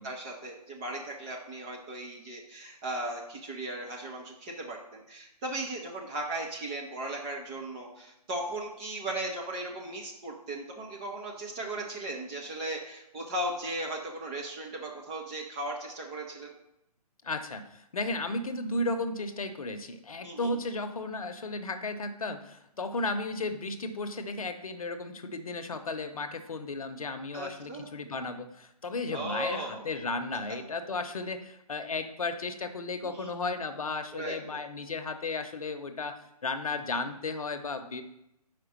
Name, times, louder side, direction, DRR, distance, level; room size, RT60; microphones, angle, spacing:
voice 1, 0.0-16.5 20.2-20.6 27.3-27.9 29.1-29.8 33.0-33.3 34.1-34.6, right 1 dB, 10° right, -2 dB, 0.4 m, -37 dB
voice 2, 17.2-38.0, left 3 dB, 60° left, 8 dB, 0.8 m, -34 dB
5.2 x 4.8 x 6.0 m, 0.84 s
figure-of-eight pair, 140°, 20 cm